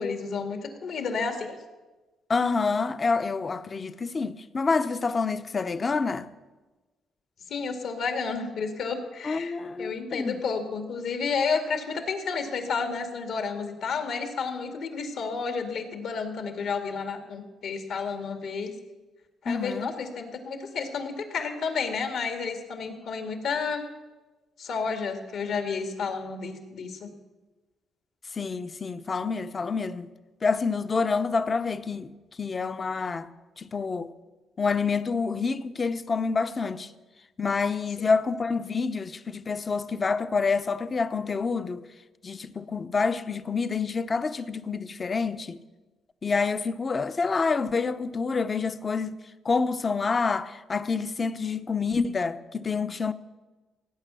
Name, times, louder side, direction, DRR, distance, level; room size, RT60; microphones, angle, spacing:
voice 1, 0.0-1.6 7.5-18.7 19.4-23.8 24.6-27.1 38.0-38.1, left 5 dB, 70° left, 2.1 m, -31 dB
voice 2, 2.3-6.3 9.2-10.4 19.5-19.9 28.3-30.1 30.4-32.1 32.4-33.3 33.6-34.1 34.6-36.9 37.4-41.9 42.2-45.6 46.2-53.1, left 4 dB, 35° left, 0.7 m, -27 dB
17.0 x 9.3 x 6.9 m
cardioid pair, 90°, 0 cm